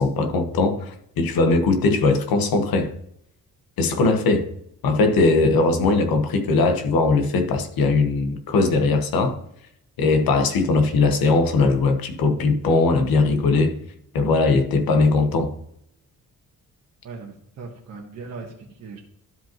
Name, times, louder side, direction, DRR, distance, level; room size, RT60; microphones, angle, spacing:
voice 1, 0.0-2.9 3.8-4.5 4.8-9.4 10.0-13.8 14.1-15.5, left 3 dB, 90° left, 1.2 m, -20 dB
voice 2, 17.0-19.0, right 4 dB, 50° right, 1.2 m, -38 dB
12.0 x 5.1 x 3.0 m
wide cardioid pair, 155°, 34 cm